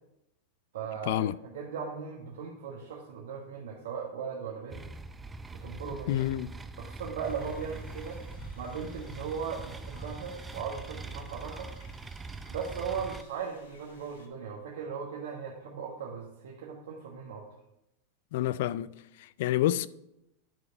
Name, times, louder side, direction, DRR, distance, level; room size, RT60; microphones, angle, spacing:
voice 1, 0.7-4.8 5.6-6.2 6.8-8.2 8.5-11.7 12.5-17.5, right 6 dB, 75° right, 1.5 m, -38 dB
sound 1, 4.7-13.2, right 3 dB, 15° right, 0.5 m, -43 dB
voice 2, 6.1-6.5 18.3-18.9 19.2-19.9, left 13 dB, 65° left, 0.4 m, -28 dB
Forest Sounds Stereo, 7.2-14.3, left 4 dB, 80° left, 1.4 m, -56 dB
10.0 x 4.8 x 5.3 m
hypercardioid pair, 105°, 0 cm